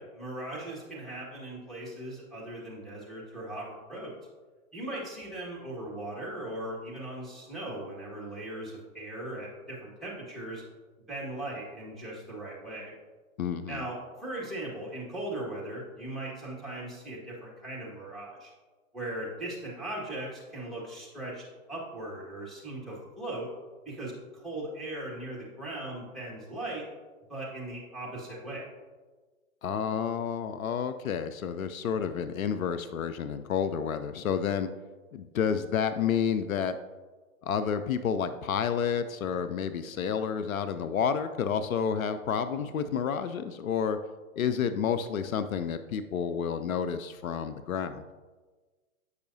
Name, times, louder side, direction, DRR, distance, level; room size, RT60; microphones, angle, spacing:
voice 1, 0.0-4.1 4.7-10.6 11.1-12.9 13.7-18.5 18.9-23.5 23.8-26.9 27.3-28.6, right 1 dB, ahead, -7 dB, 1.7 m, -39 dB
voice 2, 13.4-13.8 29.6-34.7 35.1-36.8 37.4-44.0 44.4-48.0, left 7 dB, 80° left, 11 dB, 0.5 m, -30 dB
8.1 x 5.5 x 2.7 m, 1.3 s
hypercardioid pair, 115°, 41 cm